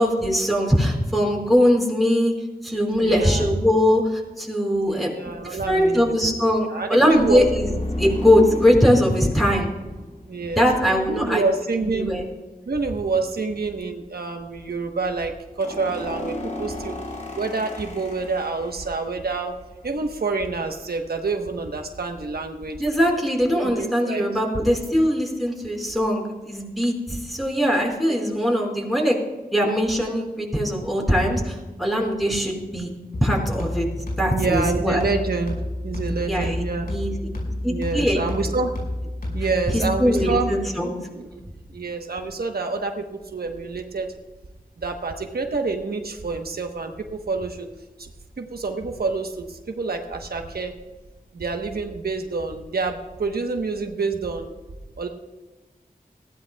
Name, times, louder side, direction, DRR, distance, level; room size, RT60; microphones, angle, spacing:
voice 1, 0.0-2.3 2.6-5.1 5.4-7.7 8.0-9.7 10.6-11.4 11.8-12.2 22.8-29.2 29.5-32.9 33.2-33.9 34.2-35.1 36.3-37.1 37.6-38.2 39.7-40.9, equal, ahead, -2 dB, 4.8 m, -21 dB
voice 2, 3.0-3.5 4.9-6.2 6.7-7.7 10.3-10.6 11.1-12.1 12.7-16.9 17.3-19.5 19.8-22.8 23.5-24.2 28.1-28.2 34.3-35.6 35.8-36.9 37.7-38.7 39.3-40.5 41.1-41.3 41.7-44.1 44.8-47.7 48.0-48.1 48.4-50.7 51.3-54.5 55.0-55.1, right 3 dB, 90° right, 4 dB, 1.1 m, -27 dB
sound 1, 7.1-10.6 15.6-19.1, left 1 dB, 45° left, 2.6 m, -33 dB
sound 2, 33.1-40.6, left 1 dB, 80° left, 5.4 m, -30 dB
20.0 x 16.0 x 2.3 m, 1.2 s
wide cardioid pair, 55°, 15 cm